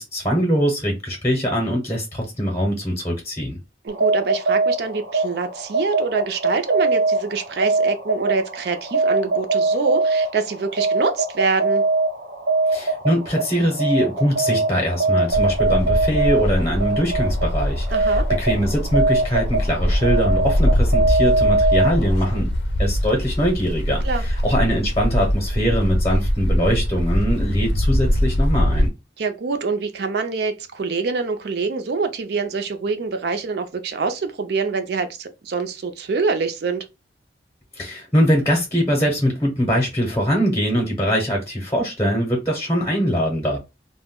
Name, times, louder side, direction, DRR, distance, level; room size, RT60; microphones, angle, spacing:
voice 1, 0.0-3.6 12.7-22.5 22.8-28.9 37.7-43.6, equal, 15° left, 0.7 m, -22 dB
voice 2, 3.8-11.8 17.9-18.3 24.0-24.2 29.2-36.8, right 4 dB, 60° right, 0.4 m, -25 dB
sound 1, 3.9-22.4, right 3 dB, 85° right, 0.8 m, -22 dB
sound 2, 15.3-28.9, equal, 70° left, 0.5 m, -22 dB
2.2 x 2.1 x 3.5 m
head